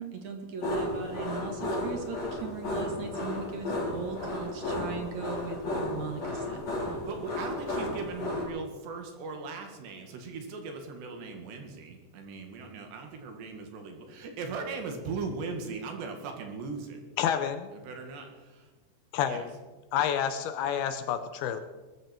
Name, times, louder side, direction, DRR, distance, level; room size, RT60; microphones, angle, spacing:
voice 1, 0.0-6.6 6.9-7.0, right 5 dB, 55° right, 3 dB, 2.5 m, -39 dB
sound 1, 0.6-8.4, left 1 dB, 40° left, 5.1 m, -33 dB
voice 2, 7.1-17.0 17.9-18.7 19.3-19.4, right 4 dB, 80° right, 4 dB, 4.0 m, -39 dB
voice 3, 17.2-17.7 19.1-19.5 19.9-21.6, left 9 dB, 75° left, 10 dB, 2.5 m, -29 dB
21.0 x 13.5 x 4.5 m, 1.3 s
omnidirectional pair, 4.9 m